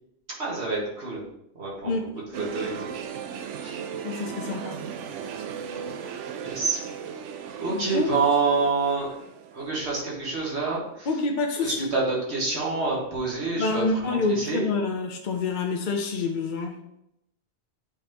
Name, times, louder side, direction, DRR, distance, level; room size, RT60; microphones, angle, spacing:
voice 1, 0.4-1.3 1.6-2.0 2.3-2.9 3.6-3.8 6.4-6.8 7.6-9.1 9.5-11.1 11.6-14.7, right 4 dB, 65° right, -4 dB, 1.9 m, -27 dB
sound 1, 2.3-10.4 10.8-10.9, right 7 dB, 80° right, 0.9 m, -37 dB
voice 2, 4.0-4.8 7.7-8.1 11.1-11.9 13.6-16.8, left 3 dB, 50° left, 3 dB, 0.7 m, -27 dB
8.4 x 4.0 x 2.9 m, 0.81 s
omnidirectional pair, 1.2 m